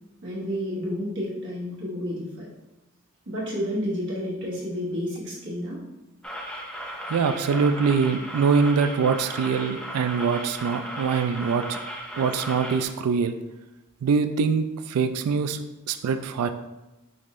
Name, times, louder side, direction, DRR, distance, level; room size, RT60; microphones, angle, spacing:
voice 1, 0.2-2.5 3.3-5.8 7.4-7.6, equal, 55° right, -5 dB, 1.3 m, -30 dB
sound 1, 6.2-12.8, equal, 5° left, 0.5 m, -36 dB
voice 2, 7.1-11.8 12.2-13.3 14.0-15.6 15.9-16.5, right 5 dB, 85° right, 8 dB, 0.3 m, -23 dB
5.1 x 2.5 x 3.1 m, 0.99 s
head